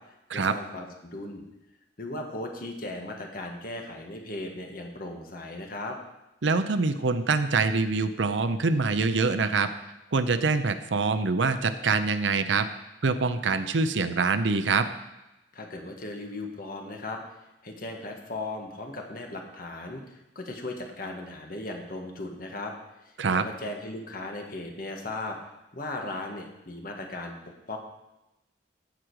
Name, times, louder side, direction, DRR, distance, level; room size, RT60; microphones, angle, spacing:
voice 1, 0.0-1.4 2.0-6.0 15.5-17.3 17.6-22.7 23.0-25.4 25.7-27.4 27.7-27.8, left 2 dB, 50° left, 2 dB, 1.5 m, -37 dB
voice 2, 6.4-9.7 10.1-12.7 13.0-14.9 23.2-23.5, right 4 dB, 80° right, 10 dB, 0.7 m, -25 dB
15.0 x 5.0 x 4.8 m, 0.96 s
head